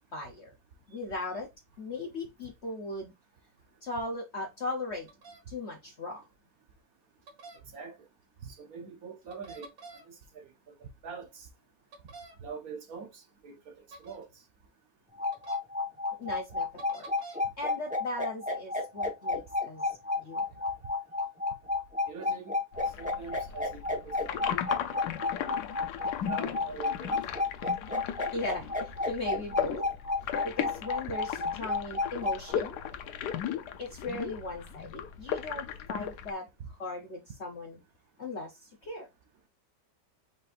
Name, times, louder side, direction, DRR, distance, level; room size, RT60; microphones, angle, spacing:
voice 1, 0.1-0.5 0.9-1.5 1.8-3.1 3.8-5.1 5.5-6.2 16.2-20.5 28.3-29.8 30.4-32.8 33.8-37.8 38.2-39.1, left 2 dB, 55° left, 0.8 m, -38 dB
sound 1, 5.1-5.4 7.3-7.6 9.3-10.0 11.9-12.3 13.9-14.2 15.3-15.6 16.8-17.4, right 3 dB, 85° right, 2.4 m, -47 dB
voice 2, 8.4-9.7 9.9-10.5 10.8-11.5 12.4-14.3 22.1-22.5 22.8-24.8 25.3-25.5 26.2-27.2 36.6-36.7, right 5 dB, 60° right, 1.1 m, -44 dB
sound 2, 15.2-32.5, left 3 dB, 5° right, 0.8 m, -31 dB
sound 3, 22.7-36.3, left 9 dB, 70° left, 1.2 m, -36 dB
5.3 x 3.9 x 2.5 m
omnidirectional pair, 1.9 m